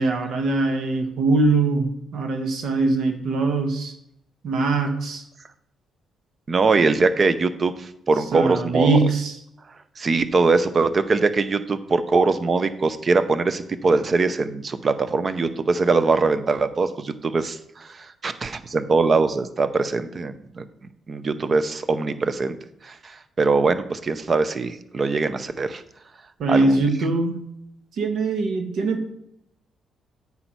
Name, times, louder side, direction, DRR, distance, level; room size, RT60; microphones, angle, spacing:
voice 1, 0.0-3.9 4.4-5.2 8.3-9.3 26.4-27.4 28.0-29.1, right 3 dB, 70° right, 5 dB, 1.4 m, -22 dB
voice 2, 6.5-9.0 10.0-20.7 21.1-22.6 22.8-25.8 26.5-26.8, right 4 dB, 40° right, 12 dB, 0.7 m, -22 dB
8.6 x 5.6 x 4.7 m, 0.78 s
cardioid pair, 90°, 0 cm